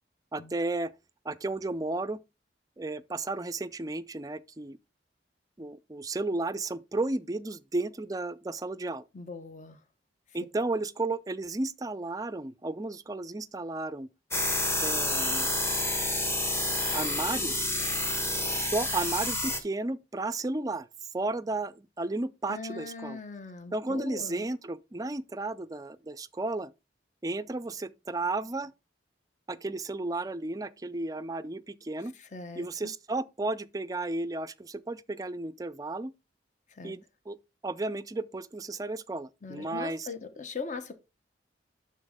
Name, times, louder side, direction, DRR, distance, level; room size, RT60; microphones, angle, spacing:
voice 1, 0.3-0.9 1.2-2.2 2.8-4.8 5.6-9.0 10.3-14.1 14.8-15.5 16.9-17.8 18.5-20.9 21.1-23.2 23.7-26.7 27.2-28.7 29.5-32.1 32.5-36.1 36.8-37.4 37.6-40.1, right 2 dB, 20° right, 0.4 m, -33 dB
voice 2, 9.1-9.8 22.5-24.5 32.2-32.9 36.8-36.9 39.4-40.9, left 4 dB, 40° left, 1.0 m, -40 dB
sound 1, 14.3-19.6, left 1 dB, 15° left, 1.2 m, -29 dB
11.5 x 4.1 x 3.6 m
head